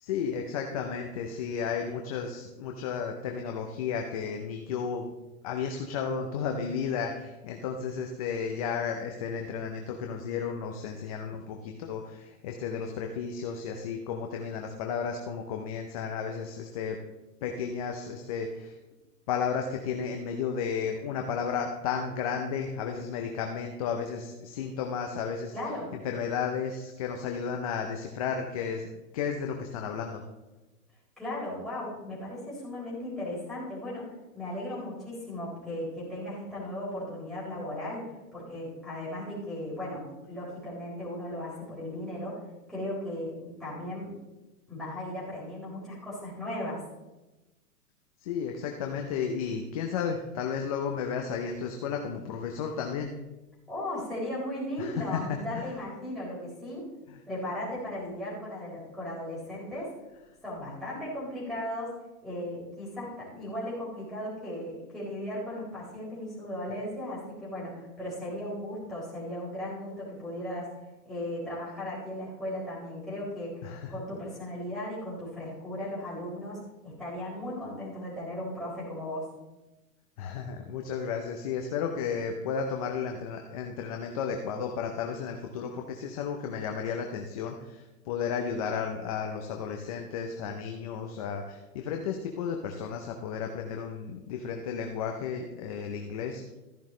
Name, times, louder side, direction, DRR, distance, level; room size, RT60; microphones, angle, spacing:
voice 1, 0.0-5.1 5.4-17.0 17.4-18.8 19.3-25.5 25.9-28.9 29.1-30.2 48.2-53.2 54.8-55.7 57.1-57.2 73.6-73.9 80.2-96.5, left 6 dB, 25° left, 3 dB, 0.6 m, -33 dB
voice 2, 25.5-25.9 31.2-42.4 42.7-44.1 44.7-46.9 53.7-56.9 57.3-59.9 60.4-62.0 62.2-70.7 71.0-79.3, left 1 dB, ahead, -8 dB, 4.0 m, -36 dB
13.5 x 10.5 x 3.2 m, 1.0 s
hypercardioid pair, 145°, 46 cm